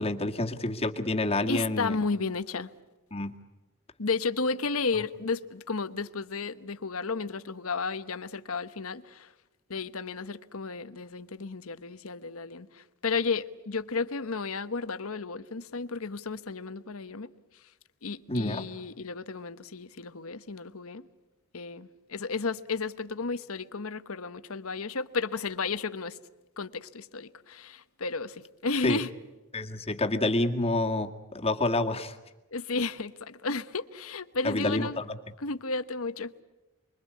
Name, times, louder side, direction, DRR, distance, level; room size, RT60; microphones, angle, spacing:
voice 1, 0.0-2.0 3.1-3.3 18.3-18.6 28.8-29.0 29.5-32.2 34.4-35.2, left 2 dB, 25° left, 1.9 m, -28 dB
voice 2, 1.5-2.7 4.0-9.3 9.7-17.3 18.0-21.1 21.5-26.2 26.6-29.1 32.5-35.0 35.4-36.3, left 4 dB, 70° left, 1.1 m, -33 dB
30.0 x 23.0 x 8.5 m
head